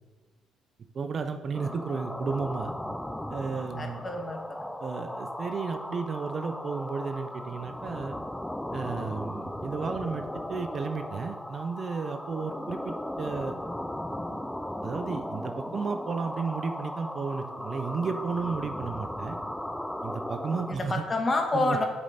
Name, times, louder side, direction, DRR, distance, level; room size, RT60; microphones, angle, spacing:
voice 1, 0.9-2.7 3.3-4.0 4.8-8.2 8.7-13.5 14.3-14.4 14.8-19.4 20.0-21.0 21.5-21.8, right 5 dB, 45° right, 8 dB, 0.5 m, -33 dB
sound 1, 1.5-20.7, left 1 dB, 5° left, 0.3 m, -37 dB
voice 2, 3.7-4.7 20.7-21.9, left 2 dB, 30° left, 3 dB, 1.3 m, -28 dB
7.2 x 5.1 x 4.1 m, 1.2 s
cardioid pair, 90°, 0 cm